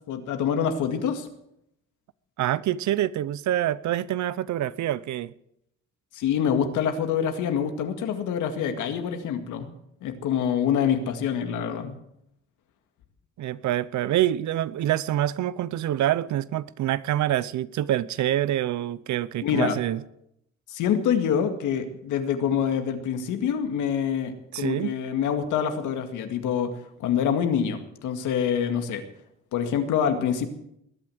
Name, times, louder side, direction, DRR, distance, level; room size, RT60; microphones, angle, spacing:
voice 1, 0.1-1.3 6.1-9.7 10.0-12.0 19.4-19.8 20.7-26.7 27.0-29.0 29.5-30.5, left 8 dB, 90° left, 2.0 m, -26 dB
voice 2, 2.4-5.3 13.4-20.0 24.5-24.9, right 12 dB, 70° right, 0.7 m, -26 dB
20.5 x 9.0 x 7.8 m
cardioid pair, 90°, 30 cm